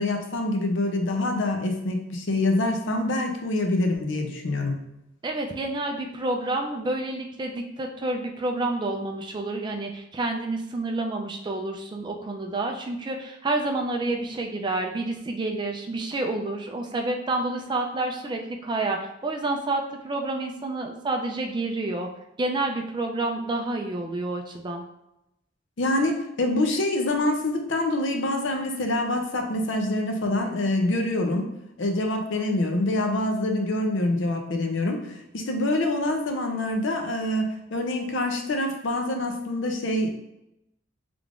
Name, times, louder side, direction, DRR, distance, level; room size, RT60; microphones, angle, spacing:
voice 1, 0.0-4.9 25.8-31.5 31.8-40.1, left 1 dB, 70° left, 4 dB, 0.6 m, -26 dB
voice 2, 5.2-22.1 22.4-24.8, right 2 dB, 25° right, 3 dB, 0.3 m, -29 dB
3.4 x 3.3 x 2.5 m, 0.86 s
head